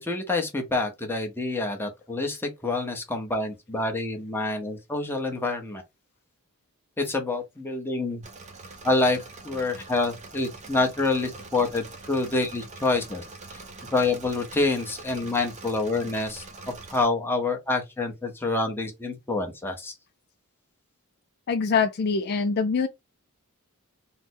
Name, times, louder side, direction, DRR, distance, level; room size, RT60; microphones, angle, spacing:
voice 1, 0.0-5.8 7.0-8.2 8.8-9.2 9.4-13.2 13.9-16.4 16.9-19.9, left 3 dB, 10° left, 0.8 m, -27 dB
Engine / Mechanisms, 8.2-17.0, right 3 dB, 30° right, 0.6 m, -44 dB
voice 2, 21.5-22.9, left 5 dB, 45° left, 0.3 m, -24 dB
3.3 x 2.1 x 4.2 m
head